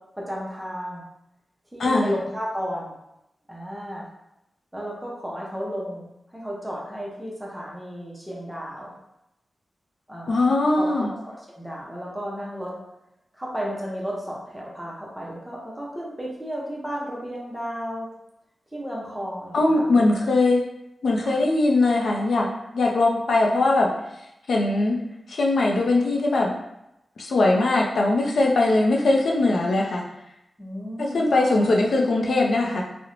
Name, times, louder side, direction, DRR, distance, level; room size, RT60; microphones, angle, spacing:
voice 1, 0.2-1.0 1.7-2.9 3.5-4.1 4.7-8.9 10.1-10.4 10.8-12.7 13.3-18.1 18.7-20.0 21.2-21.4 30.6-31.7, equal, 5° right, -4 dB, 0.6 m, -33 dB
voice 2, 10.3-11.1 19.5-20.6 21.0-23.9 24.5-25.0 25.3-26.6 27.2-30.0 31.0-32.8, left 2 dB, 70° left, -1 dB, 0.4 m, -21 dB
2.5 x 2.0 x 2.9 m, 0.85 s
wide cardioid pair, 170°, 0 cm